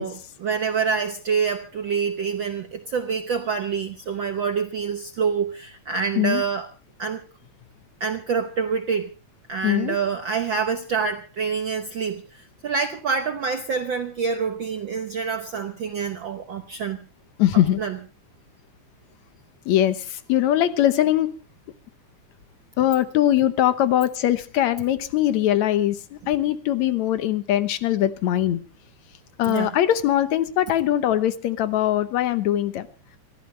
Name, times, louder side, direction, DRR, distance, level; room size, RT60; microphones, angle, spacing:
voice 1, 0.0-6.7 7.0-7.2 8.0-9.1 9.5-17.0 17.5-18.1 26.2-26.3 29.4-29.7, right 6 dB, 65° right, 1.2 m, -27 dB
voice 2, 9.6-10.0 17.4-17.8 19.7-21.3 22.8-28.6 29.4-32.9, left 12 dB, 75° left, 2.2 m, -21 dB
27.0 x 13.5 x 3.2 m
omnidirectional pair, 3.4 m